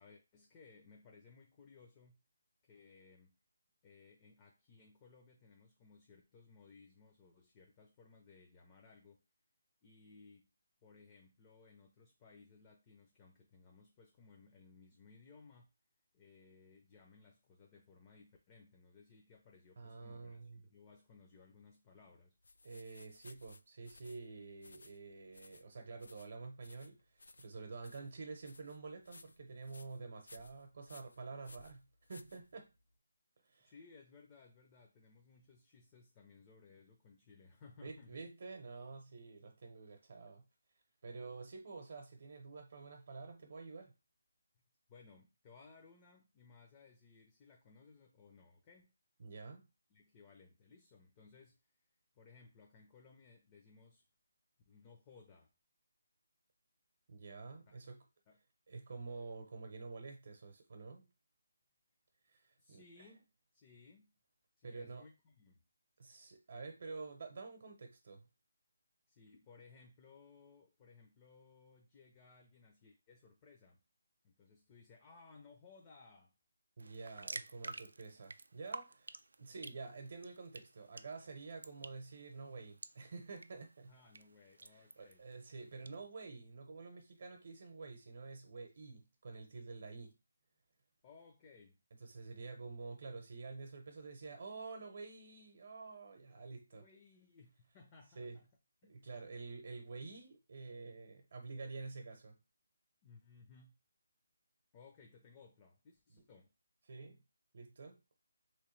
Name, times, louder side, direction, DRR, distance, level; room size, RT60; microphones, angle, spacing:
voice 1, 0.0-2.2 2.6-3.3 3.8-9.2 9.8-10.5 10.8-15.7 16.1-22.3 33.6-38.3 44.9-48.9 49.9-51.6 52.1-54.0 54.7-55.5 57.7-57.9 58.3-58.4 62.6-64.1 64.6-65.6 69.1-73.8 74.2-76.3 79.5-79.6 83.9-85.2 91.0-91.8 96.7-98.5 98.8-99.1 103.0-103.8 104.7-106.5, left 4 dB, 20° left, 2 dB, 0.5 m, -61 dB
voice 2, 19.8-20.7 22.6-32.7 33.4-33.7 37.8-40.4 41.0-43.9 49.2-49.7 57.1-58.0 58.7-61.1 62.3-63.1 64.6-65.0 66.0-68.3 76.8-83.9 84.7-90.1 92.0-96.8 98.2-98.4 98.9-102.4 106.1-106.2 106.9-107.2 107.5-108.0, right 4 dB, 50° right, 4 dB, 0.7 m, -49 dB
sound 1, 22.4-32.9, left 3 dB, 80° left, 0.3 m, -61 dB
sound 2, 76.8-85.9, right 3 dB, 85° right, 0.3 m, -52 dB
3.1 x 3.0 x 3.1 m, 0.27 s
hypercardioid pair, 170°, 0 cm